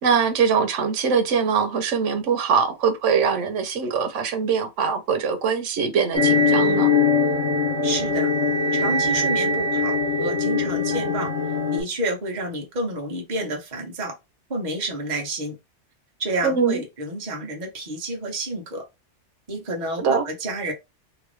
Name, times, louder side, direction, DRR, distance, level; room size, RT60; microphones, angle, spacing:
voice 1, 0.0-6.9 16.4-16.8 20.0-20.2, right 6 dB, 85° right, 1.1 m, -22 dB
sound 1, 6.1-11.8, left 3 dB, 70° left, 1.3 m, -21 dB
voice 2, 7.8-8.3 8.7-11.3 11.7-14.1 14.5-15.6 16.2-18.8 19.5-20.7, right 1 dB, 40° right, 1.0 m, -29 dB
3.0 x 2.5 x 3.1 m
omnidirectional pair, 1.2 m